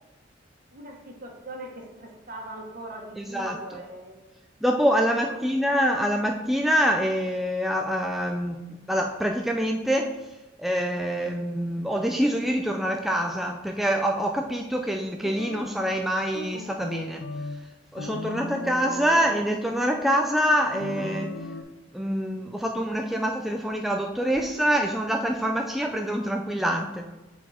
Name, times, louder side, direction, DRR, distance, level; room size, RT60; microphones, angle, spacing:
voice 1, 0.7-4.2 5.0-5.4, right 1 dB, 50° right, 0 dB, 1.4 m, -41 dB
voice 2, 3.2-3.6 4.6-8.6 8.9-10.1 10.6-17.2 17.9-21.3 21.9-27.0, equal, ahead, 2 dB, 0.3 m, -25 dB
sound 1, 15.2-15.7 16.3-17.6 18.0-19.5 20.7-21.6, left 2 dB, 75° left, 0.6 m, -36 dB
7.0 x 4.2 x 4.3 m, 1.1 s
head